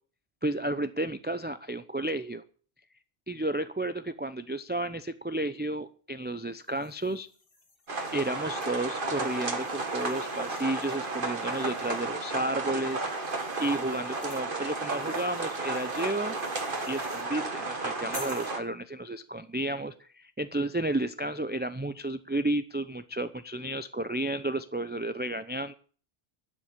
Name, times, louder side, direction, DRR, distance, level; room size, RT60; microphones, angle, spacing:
voice 1, 0.4-2.4 3.3-7.3 8.1-13.0 13.6-16.4 16.9-25.7, right 1 dB, 10° right, 11 dB, 0.5 m, -32 dB
sound 1, 6.6-12.2 12.8-17.3 18.1-18.6, left 3 dB, 65° left, 2.0 m, -52 dB
sound 2, 7.9-18.6, right 3 dB, 55° right, 2.0 m, -33 dB
12.5 x 7.5 x 9.9 m, 0.43 s
omnidirectional pair, 1.0 m